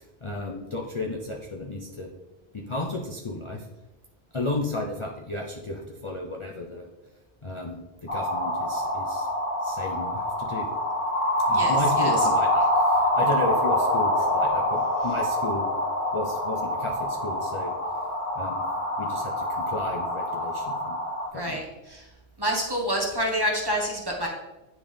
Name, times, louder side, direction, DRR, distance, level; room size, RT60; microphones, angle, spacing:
voice 1, 0.2-2.1 2.5-3.7 4.3-6.8 7.4-9.3 9.6-10.7 11.5-15.7 16.1-17.7 18.4-18.6 19.0-21.0 21.3-21.6, left 2 dB, 35° left, 0 dB, 0.6 m, -33 dB
sound 1, 8.1-21.3, left 1 dB, 60° left, 2.6 m, -26 dB
voice 2, 11.5-12.3 21.3-21.6 21.9-22.0 22.4-24.3, equal, 25° right, -1 dB, 1.1 m, -28 dB
9.7 x 3.6 x 3.4 m, 1.0 s
omnidirectional pair, 1.0 m